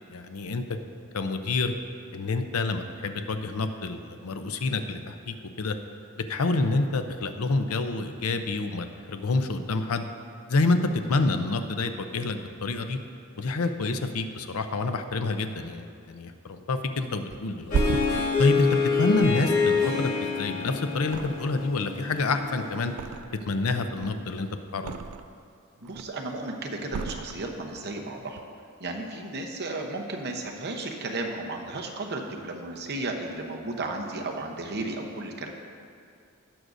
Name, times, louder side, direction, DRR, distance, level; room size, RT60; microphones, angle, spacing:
voice 1, 0.1-0.8 1.1-1.7 2.1-5.8 6.3-10.1 10.5-13.0 13.4-17.8 18.4-22.9 23.5-24.9, left 3 dB, 80° left, 8 dB, 0.6 m, -28 dB
Thump thud, 17.3-20.6 21.0-21.8 22.1-23.6 23.9-25.4 25.8-26.3 26.9-27.9 28.2-28.4, right 5 dB, 90° right, 0.4 m, -34 dB
Harp, 17.7-22.9, left 5 dB, 40° left, 1.3 m, -27 dB
voice 2, 25.8-28.4 28.8-35.5, right 2 dB, 50° right, 1 dB, 0.9 m, -34 dB
17.5 x 6.2 x 2.6 m, 2.4 s
head